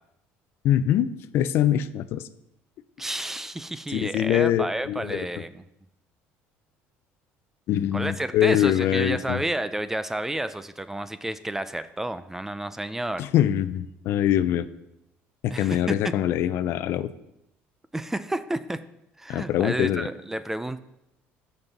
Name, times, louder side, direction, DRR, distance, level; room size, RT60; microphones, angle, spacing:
voice 1, 0.6-2.2 3.9-5.3 7.7-9.4 13.2-14.7 15.4-17.1 19.3-20.1, left 11 dB, 60° left, 14 dB, 0.5 m, -24 dB
voice 2, 3.0-5.6 7.9-13.3 15.5-15.9 17.9-18.8 19.2-20.8, right 1 dB, 10° right, 13 dB, 0.4 m, -30 dB
13.0 x 5.4 x 4.0 m, 0.85 s
cardioid pair, 130°, 5 cm